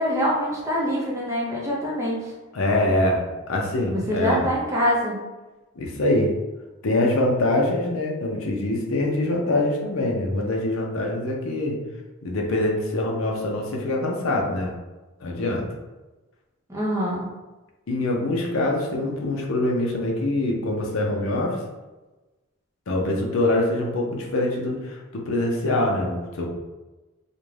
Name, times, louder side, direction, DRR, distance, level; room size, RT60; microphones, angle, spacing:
voice 1, 0.0-2.3 3.9-5.2 16.7-17.3, equal, 15° right, -5 dB, 0.6 m, -24 dB
voice 2, 2.5-4.5 5.8-6.3 6.8-11.8 12.2-14.7 15.2-15.7 17.9-21.6 22.9-26.5, left 1 dB, 70° left, 0 dB, 0.5 m, -24 dB
2.5 x 2.2 x 3.1 m, 1.1 s
head